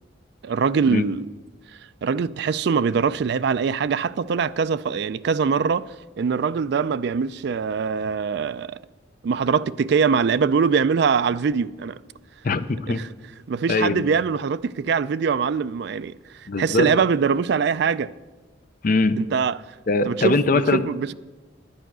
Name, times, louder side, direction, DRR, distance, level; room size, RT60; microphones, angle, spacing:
voice 1, 0.4-1.3 2.0-8.8 9.2-12.0 12.9-13.1 13.5-16.1 16.4-18.1 19.2-19.6 20.1-20.4 20.7-21.1, right 6 dB, 60° right, 0.3 m, -23 dB
voice 2, 12.4-13.0 13.7-14.0 16.5-17.0 18.8-19.2 19.9-20.8, left 3 dB, 45° left, 0.5 m, -21 dB
10.0 x 9.2 x 6.1 m
head